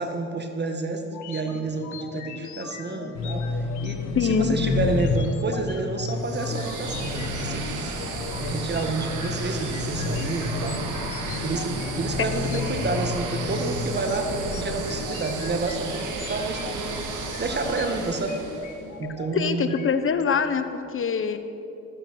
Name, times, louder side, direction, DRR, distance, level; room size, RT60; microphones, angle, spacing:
voice 1, 0.0-7.9 8.4-10.9 11.4-17.0 17.4-18.4 19.0-19.8, right 3 dB, 35° right, 5 dB, 1.6 m, -29 dB
sound 1, 1.0-20.3, left 6 dB, 75° left, 1.5 m, -41 dB
sound 2, 3.1-15.0, left 3 dB, 60° left, 1.5 m, -31 dB
voice 2, 4.1-4.6 12.2-12.3 19.3-21.4, left 6 dB, 45° left, 10 dB, 1.2 m, -24 dB
sound 3, 6.2-18.8, right 4 dB, 85° right, 2.2 m, -33 dB
14.5 x 14.0 x 6.2 m, 2.8 s
cardioid pair, 90°, 30 cm